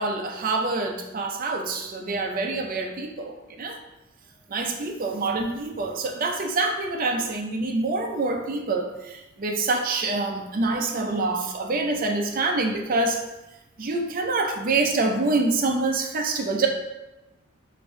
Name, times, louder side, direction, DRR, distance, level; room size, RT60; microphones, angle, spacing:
voice 1, 0.0-3.8 4.5-13.2 13.8-16.7, right 3 dB, 45° right, 2 dB, 0.5 m, -26 dB
5.1 x 2.6 x 3.6 m, 0.99 s
head